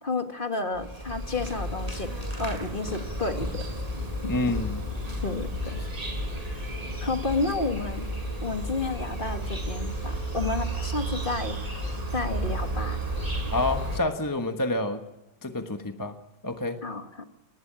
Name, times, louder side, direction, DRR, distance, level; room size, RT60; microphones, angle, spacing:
voice 1, 0.0-3.6 5.2-5.7 7.0-8.1 8.4-11.6 12.1-13.0 16.8-17.2, left 3 dB, 30° left, 6 dB, 1.7 m, -31 dB
Insect, 0.7-14.0, right 1 dB, 20° right, 6.0 m, -32 dB
voice 2, 4.3-4.8 13.5-15.0 15.4-16.2 16.4-16.8, left 2 dB, 10° left, 6 dB, 1.1 m, -28 dB
20.0 x 19.5 x 8.9 m, 0.99 s
omnidirectional pair, 2.0 m